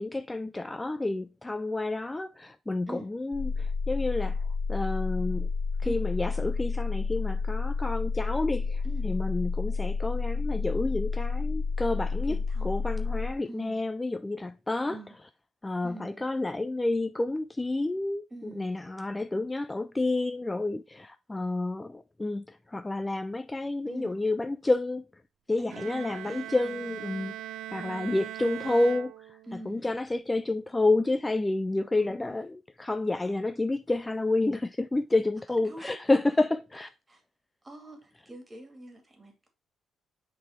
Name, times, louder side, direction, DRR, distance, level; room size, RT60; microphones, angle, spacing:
voice 1, 0.0-4.4 4.7-5.5 5.8-12.4 12.6-15.0 15.6-25.1 25.5-27.3 27.7-29.4 29.7-36.9, left 2 dB, 15° left, 0.3 m, -29 dB
sound 1, 3.3-13.3, left 4 dB, 40° left, 1.1 m, -30 dB
voice 2, 12.2-12.8 13.5-13.8 14.9-15.1 15.8-16.3 18.3-18.9 23.9-24.2 25.6-27.1 27.9-28.3 29.4-29.9 32.0-32.4 35.6-36.0 37.1-37.2 37.6-39.5, right 1 dB, 20° right, 2.2 m, -45 dB
Bowed string instrument, 25.7-29.7, right 13 dB, 85° right, 0.3 m, -40 dB
5.7 x 4.1 x 4.3 m
cardioid pair, 90°, 0 cm